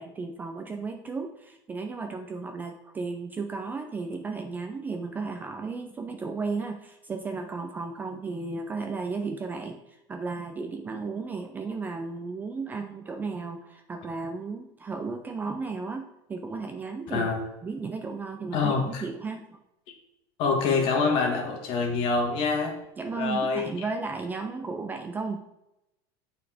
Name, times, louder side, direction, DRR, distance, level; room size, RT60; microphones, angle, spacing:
voice 1, 0.0-17.3 17.6-19.4 23.0-25.4, right 4 dB, 15° right, 5 dB, 0.4 m, -34 dB
voice 2, 17.1-17.4 18.5-19.0 20.4-22.7 23.1-23.7, left 4 dB, 40° left, 2 dB, 1.7 m, -25 dB
8.2 x 4.2 x 4.9 m, 0.88 s
supercardioid pair, 160°, 13 cm